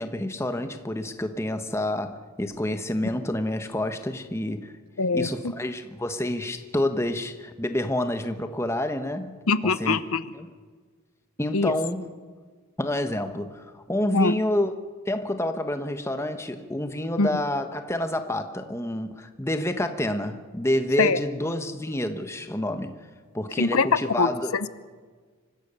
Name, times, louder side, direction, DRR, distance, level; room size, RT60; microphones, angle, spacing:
voice 1, 0.0-4.7 5.1-10.0 10.3-10.5 11.4-12.1 12.8-14.7 15.1-23.0 23.3-24.6, left 1 dB, 10° left, 1.1 m, -28 dB
voice 2, 5.0-5.3 9.5-10.2 11.5-11.7 14.1-14.3 17.2-17.3 21.0-21.2 23.6-23.9 24.2-24.7, left 4 dB, 85° left, 0.8 m, -23 dB
25.5 x 15.5 x 6.9 m
head